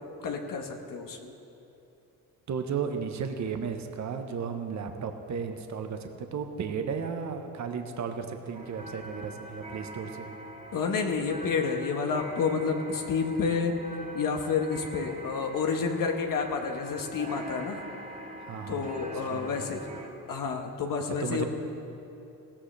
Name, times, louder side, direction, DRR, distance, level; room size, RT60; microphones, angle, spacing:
voice 1, 0.0-1.3 10.7-13.8 14.1-17.8 18.7-19.8 20.3-21.4, left 5 dB, 55° left, 3 dB, 1.4 m, -29 dB
voice 2, 2.5-10.3 18.4-18.9 19.3-19.8 21.2-21.4, right 6 dB, 45° right, 6 dB, 1.2 m, -34 dB
sound 1, 8.5-20.1, right 1 dB, 20° right, 2.3 m, -43 dB
16.5 x 14.5 x 3.4 m, 2.9 s
supercardioid pair, 70°, 40 cm